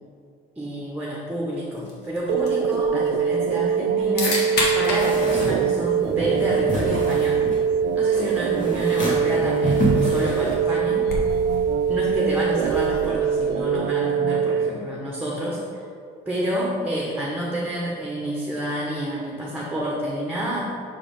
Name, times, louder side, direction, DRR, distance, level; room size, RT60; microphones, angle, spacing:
voice 1, 0.5-4.4 4.7-7.4 7.9-11.1 11.9-15.8 16.3-20.7, equal, 10° right, -3 dB, 1.1 m, -28 dB
sound 1, 1.8-13.7, left 1 dB, 75° left, 1.7 m, -34 dB
sound 2, 2.3-14.7, right 7 dB, 85° right, 0.4 m, -23 dB
sound 3, 4.8-11.0, right 1 dB, 50° left, 1.7 m, -29 dB
5.7 x 4.9 x 5.1 m, 2.3 s
cardioid pair, 110°, 17 cm